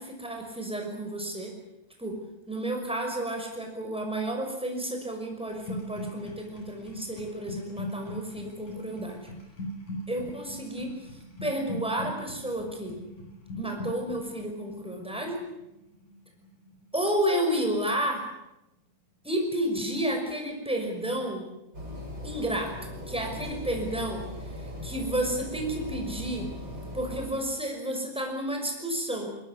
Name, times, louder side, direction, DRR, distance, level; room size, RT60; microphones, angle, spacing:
voice 1, 0.0-1.6 2.0-2.2 2.5-9.3 10.1-13.0 13.6-15.4 16.9-18.3 19.2-21.5 22.2-24.2 24.6-26.5 26.9-29.3, right 1 dB, ahead, 2 dB, 5.8 m, -31 dB
sound 1, 5.5-17.3 17.6-18.0, equal, 90° left, 8.6 m, -41 dB
sound 2, 21.7-27.3, left 1 dB, 40° right, 8.7 m, -39 dB
22.0 x 21.5 x 9.7 m, 0.91 s
omnidirectional pair, 3.3 m